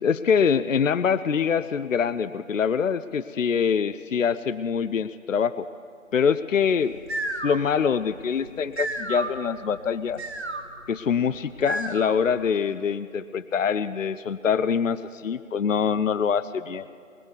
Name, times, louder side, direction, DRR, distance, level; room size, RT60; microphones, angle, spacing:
voice 1, 0.0-5.7 6.1-6.9 7.4-10.2 10.9-16.9, left 6 dB, 65° left, 15 dB, 0.5 m, -24 dB
sound 1, 6.8-12.4, right 2 dB, 50° right, 1.2 m, -34 dB
20.5 x 6.9 x 7.9 m, 2.3 s
figure-of-eight pair, 180°, 41 cm